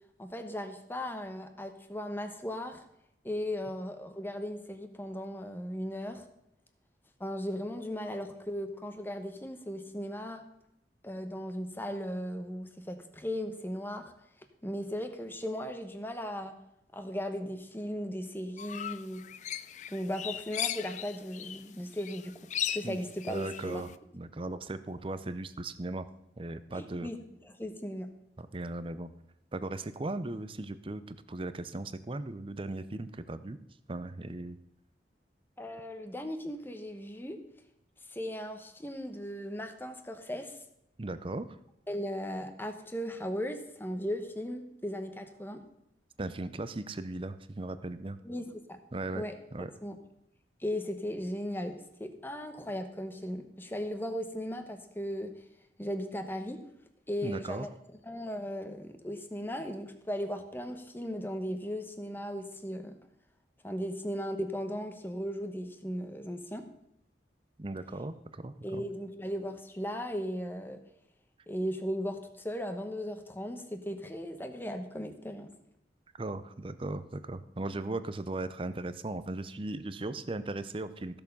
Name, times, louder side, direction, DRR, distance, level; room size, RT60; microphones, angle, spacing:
voice 1, 0.2-2.8 3.2-6.3 7.2-10.4 11.0-14.1 14.6-16.5 16.9-19.2 19.9-23.8 26.7-27.2 27.4-28.1 35.6-37.4 38.1-40.6 41.9-45.6 48.2-48.8 49.1-49.4 49.8-50.0 50.6-55.3 55.8-56.6 57.1-57.7 58.1-62.9 63.6-66.6 68.6-70.8 71.5-75.5, equal, 10° left, 7 dB, 1.0 m, -37 dB
sound 1, 18.6-21.7 21.9-23.9, left 10 dB, 40° left, 0.4 m, -37 dB
voice 2, 23.3-26.1 26.4-27.1 28.4-29.1 29.5-33.6 33.9-34.6 41.0-41.5 46.2-48.2 48.9-49.2 49.5-49.7 57.2-57.7 67.6-68.8 76.2-81.2, right 2 dB, 30° right, 13 dB, 0.6 m, -37 dB
15.0 x 6.9 x 5.4 m, 0.81 s
head